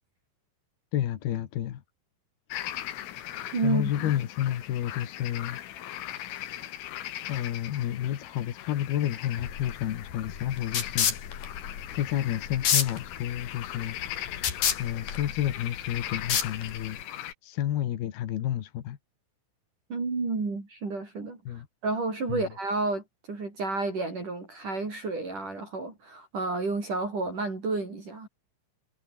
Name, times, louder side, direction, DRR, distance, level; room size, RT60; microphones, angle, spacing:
voice 1, 0.9-1.8 3.6-5.6 7.3-11.1 11.9-14.0 14.8-17.0 17.4-19.0 21.4-21.7 22.3-22.5, left 11 dB, 60° left, 3.1 m, -30 dB
sound 1, 2.5-17.3, left 13 dB, 85° left, 4.5 m, -39 dB
voice 2, 3.5-4.1 19.9-23.0 23.3-28.3, right 3 dB, 40° right, 7.3 m, -31 dB
sound 2, 9.4-17.0, left 8 dB, 45° left, 3.8 m, -30 dB
omnidirectional pair, 5.8 m